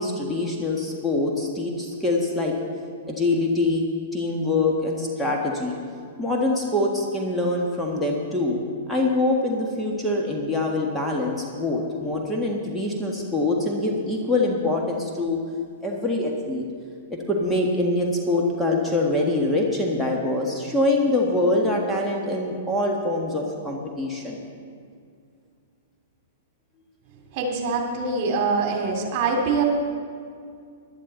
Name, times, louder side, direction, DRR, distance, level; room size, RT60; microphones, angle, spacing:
voice 1, 0.0-2.5 3.1-3.8 4.1-5.7 6.2-8.6 8.9-15.4 15.8-16.7 17.1-24.4, left 2 dB, 5° left, -2 dB, 1.8 m, -24 dB
voice 2, 27.3-29.6, right 4 dB, 45° right, 2 dB, 2.6 m, -24 dB
16.5 x 11.5 x 4.1 m, 2.3 s
hypercardioid pair, 115°, 0 cm